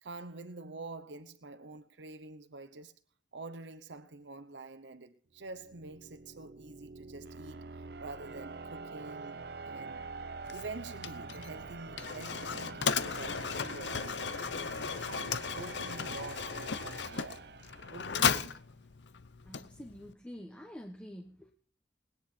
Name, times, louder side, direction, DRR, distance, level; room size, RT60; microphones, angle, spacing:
voice 1, 0.0-3.0 3.3-7.7 8.0-10.1 10.5-14.2 15.1-17.5 17.9-18.6, right 3 dB, 90° right, 0.9 m, -47 dB
sound 1, 5.4-18.3, right 4 dB, 65° right, 0.6 m, -46 dB
Mechanisms, 10.4-20.1, left 6 dB, 85° left, 0.7 m, -36 dB
voice 2, 19.4-21.5, equal, 5° left, 1.2 m, -47 dB
20.5 x 9.9 x 4.3 m
head